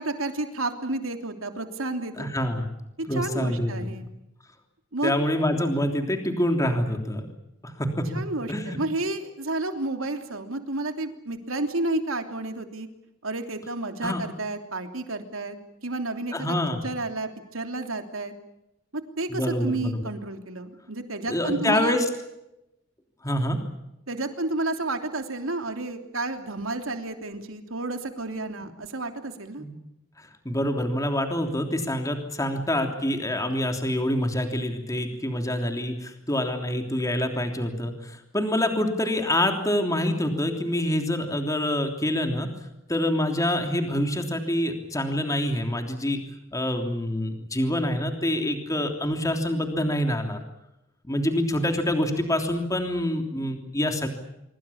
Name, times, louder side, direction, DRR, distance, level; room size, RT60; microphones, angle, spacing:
voice 1, 0.0-2.5 3.0-4.0 4.9-5.1 8.1-12.9 13.2-15.6 15.8-16.6 16.8-18.3 18.9-22.0 24.1-29.6, right 2 dB, 85° right, 6 dB, 3.2 m, -31 dB
voice 2, 2.2-2.7 3.1-3.7 5.0-7.3 7.6-8.1 8.5-8.8 14.0-14.2 16.3-16.8 19.3-20.0 21.3-22.0 23.2-23.6 29.6-29.7 30.4-42.5 42.9-46.2 46.5-50.4 51.0-54.1, left 1 dB, 15° left, 4 dB, 3.2 m, -26 dB
25.5 x 24.5 x 7.2 m, 0.88 s
head